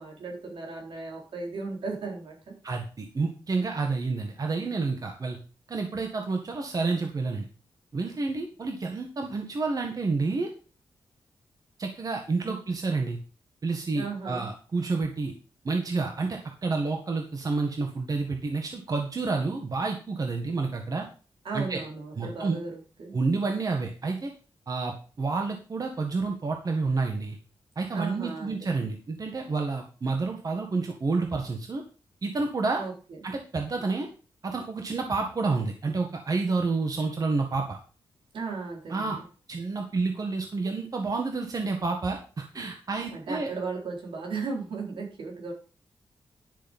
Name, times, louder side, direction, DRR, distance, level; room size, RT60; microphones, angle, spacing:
voice 1, 0.0-2.5 12.4-12.5 13.9-14.5 21.4-23.2 27.9-28.9 32.7-33.2 38.3-39.2 43.1-45.5, right 4 dB, 80° right, -1 dB, 4.3 m, -36 dB
voice 2, 2.6-5.4 5.7-7.5 7.9-10.5 11.8-13.2 13.6-15.3 15.6-21.1 21.5-21.8 22.2-22.6 23.1-24.3 24.7-27.4 27.7-31.8 32.2-32.8 33.2-34.1 34.4-37.8 38.9-39.2 39.5-43.5, right 3 dB, 45° right, 3 dB, 1.7 m, -29 dB
11.0 x 6.5 x 5.4 m, 0.37 s
wide cardioid pair, 95°, 9 cm